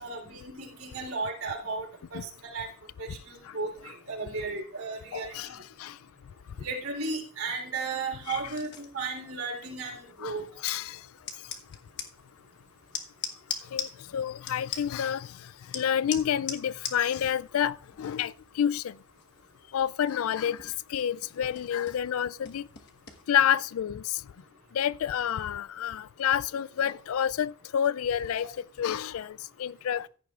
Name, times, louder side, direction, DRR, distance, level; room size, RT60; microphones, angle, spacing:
voice 1, 0.0-2.7 3.0-5.6 6.6-10.4, right 3 dB, 75° right, 3.6 m, -35 dB
voice 2, 5.1-5.9 8.3-8.4 10.2-10.3 10.6-11.0 13.7-15.3 15.7-18.9 19.7-22.7 23.3-24.0 24.7-28.5 28.8-30.1, left 9 dB, 70° left, 0.4 m, -29 dB
sound 1, 8.2-23.3, left 7 dB, 55° left, 1.3 m, -43 dB
15.0 x 9.8 x 2.4 m
head